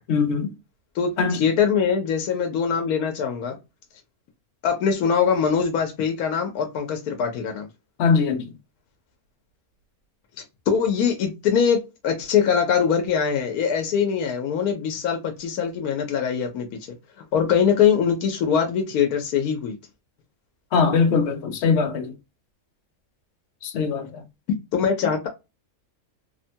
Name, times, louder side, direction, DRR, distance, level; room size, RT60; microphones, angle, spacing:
voice 1, 0.1-0.5 1.2-1.5 8.0-8.5 20.7-22.1 23.6-24.2, left 5 dB, 60° left, 0.8 m, -21 dB
voice 2, 0.9-3.6 4.6-7.7 10.7-17.0 17.3-19.8 24.7-25.3, left 7 dB, 85° left, 1.1 m, -22 dB
3.1 x 2.1 x 2.6 m
omnidirectional pair, 1.5 m